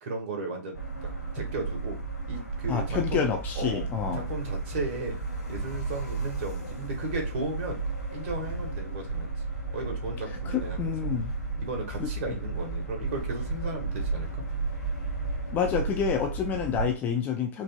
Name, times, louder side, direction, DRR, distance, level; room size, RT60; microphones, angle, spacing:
voice 1, 0.0-1.1 1.3-2.0 2.3-3.3 3.6-3.8 4.1-5.2 5.5-7.8 8.1-9.3 9.7-11.1 11.6-14.4, right 2 dB, 40° right, 1 dB, 1.4 m, -35 dB
sound 1, 0.7-16.9, right 3 dB, 80° left, 1.9 m, -33 dB
voice 2, 2.7-4.2 10.5-11.3 12.0-12.1 15.5-17.6, left 7 dB, 20° left, 4 dB, 0.4 m, -28 dB
4.9 x 2.6 x 2.2 m, 0.34 s
figure-of-eight pair, 120°, 9 cm